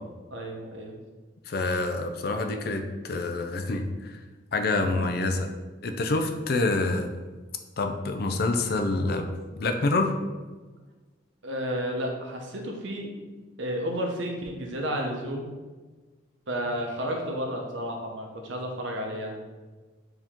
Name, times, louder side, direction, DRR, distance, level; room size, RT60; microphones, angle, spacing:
voice 1, 0.3-1.0 11.4-13.1 13.6-15.5 16.5-19.4, equal, 80° right, 1 dB, 0.8 m, -32 dB
voice 2, 1.5-4.2 4.5-5.5 5.8-7.1 7.8-9.3 9.6-10.1, left 2 dB, 55° left, 6 dB, 0.4 m, -27 dB
4.6 x 2.9 x 3.6 m, 1.3 s
head